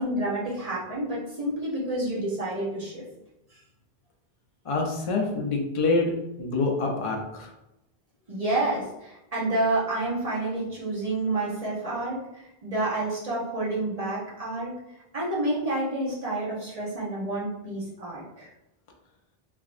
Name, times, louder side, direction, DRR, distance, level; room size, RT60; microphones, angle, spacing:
voice 1, 0.0-3.0 8.3-14.7 15.1-18.5, right 2 dB, 40° right, -7 dB, 1.0 m, -29 dB
voice 2, 4.7-6.1 6.4-7.5, left 3 dB, 40° left, 0 dB, 0.6 m, -26 dB
3.4 x 2.9 x 2.5 m, 0.89 s
omnidirectional pair, 1.0 m